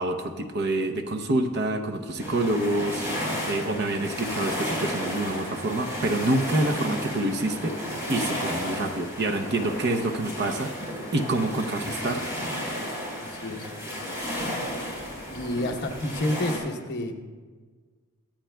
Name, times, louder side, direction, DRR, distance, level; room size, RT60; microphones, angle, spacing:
voice 1, 0.0-7.8 8.1-10.7 11.1-12.3, right 1 dB, 50° right, 6 dB, 0.7 m, -27 dB
sound 1, 2.2-16.6, equal, 15° right, 3.7 m, -33 dB
voice 2, 3.6-3.9 8.7-9.0 13.2-13.7 15.3-17.2, left 1 dB, 50° left, 3 dB, 1.0 m, -30 dB
24.0 x 8.8 x 2.3 m, 1.4 s
head